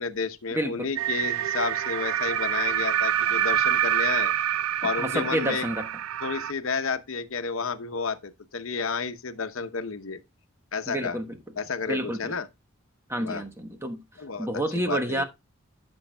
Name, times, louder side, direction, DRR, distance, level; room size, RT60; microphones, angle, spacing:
voice 1, 0.0-4.3 4.8-5.7 6.2-10.2 10.7-11.2 11.6-12.5 13.2-13.4 14.2-15.2, left 5 dB, 70° left, 0.9 m, -31 dB
voice 2, 0.5-0.9 5.0-5.9 10.9-11.4 11.9-12.3 13.1-14.0 14.4-15.2, right 1 dB, 10° right, 1.1 m, -29 dB
sound 1, 1.0-6.5, right 10 dB, 75° right, 0.4 m, -26 dB
13.0 x 6.3 x 2.2 m
head